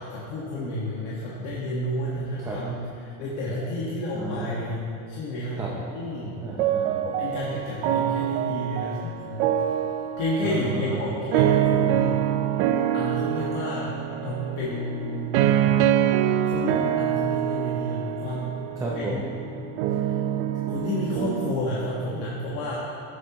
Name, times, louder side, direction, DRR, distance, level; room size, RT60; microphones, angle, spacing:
voice 1, 0.0-4.8 5.1-5.6 5.9-6.3 7.0-9.4 10.2-12.1 12.9-13.9 14.2-15.6 16.4-18.4 18.9-19.3 20.0-20.2 20.7-22.7, left 1 dB, 50° left, -6 dB, 1.7 m, -31 dB
voice 2, 4.1-4.8 5.5-5.9 6.4-7.0 7.8-8.0 10.4-11.0 18.8-19.2, right 2 dB, 10° right, -4 dB, 0.6 m, -33 dB
sound 1, 6.6-21.6, right 10 dB, 55° right, 0.6 m, -25 dB
15.5 x 8.1 x 3.0 m, 2.5 s
cardioid pair, 175°, 38 cm